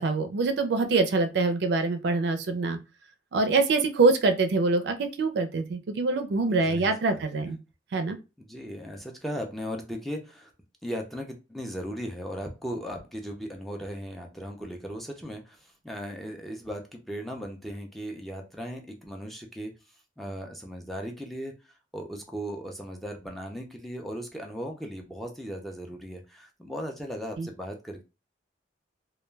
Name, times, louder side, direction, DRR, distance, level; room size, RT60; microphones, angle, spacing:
voice 1, 0.0-2.8 3.3-7.6 7.9-8.2 27.4-27.5, right 3 dB, 65° right, 8 dB, 0.4 m, -24 dB
voice 2, 6.5-7.5 8.4-10.5 10.8-19.7 20.2-21.5 21.9-28.0, equal, ahead, 1 dB, 0.4 m, -37 dB
2.2 x 2.1 x 3.2 m, 0.28 s
head